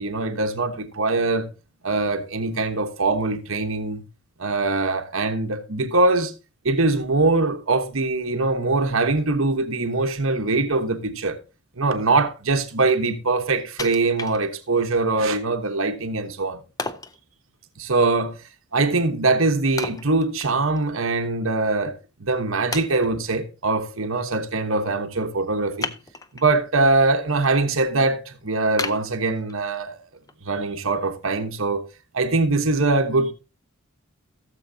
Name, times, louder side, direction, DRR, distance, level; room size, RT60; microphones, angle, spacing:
voice 1, 0.0-1.5 1.8-4.0 4.4-6.3 6.6-11.4 11.8-16.6 17.8-18.4 18.7-21.9 22.2-25.9 26.3-30.0 30.4-31.8 32.1-33.3, right 3 dB, 70° right, 1.2 m, -22 dB
Wood, 13.8-14.9 15.4-15.5 16.8-17.2 19.8-20.9 21.2-21.3 22.0-22.1 22.7-23.4 25.8-26.5 27.0-27.5 27.9-28.0 28.8-29.8 30.3-30.4, left 3 dB, 15° left, 0.5 m, -33 dB
16.5 x 7.2 x 2.8 m
head